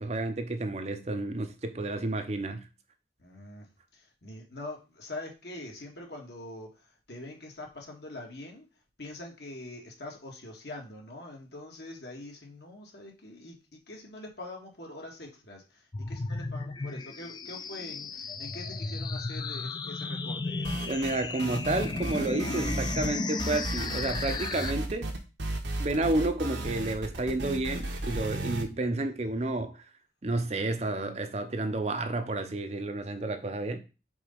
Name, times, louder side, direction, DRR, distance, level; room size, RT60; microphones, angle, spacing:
voice 1, 0.0-2.7 20.9-25.1 25.8-29.8 30.2-33.8, right 2 dB, 35° right, 0.6 m, -31 dB
voice 2, 3.2-3.7 3.9-8.7 9.0-21.3, left 2 dB, 65° left, 1.7 m, -44 dB
sound 1, 15.9-24.7, left 3 dB, 25° left, 0.3 m, -34 dB
sound 2, 20.6-21.1 21.4-23.1 23.4-28.6, right 1 dB, 75° right, 1.1 m, -34 dB
4.8 x 4.0 x 5.2 m
head